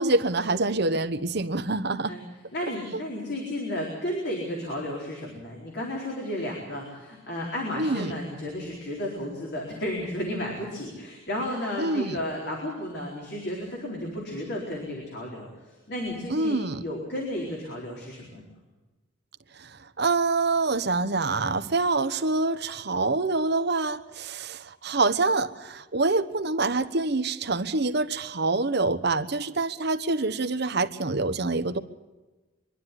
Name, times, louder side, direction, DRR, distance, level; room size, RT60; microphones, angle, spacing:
voice 1, 0.0-2.2 7.8-8.1 11.8-12.2 16.3-16.8 19.6-19.7 20.0-31.8, right 3 dB, 60° right, 11 dB, 1.1 m, -26 dB
voice 2, 2.5-15.5 15.9-18.5, left 1 dB, 60° left, -2 dB, 4.3 m, -33 dB
24.0 x 12.0 x 9.8 m, 1.2 s
head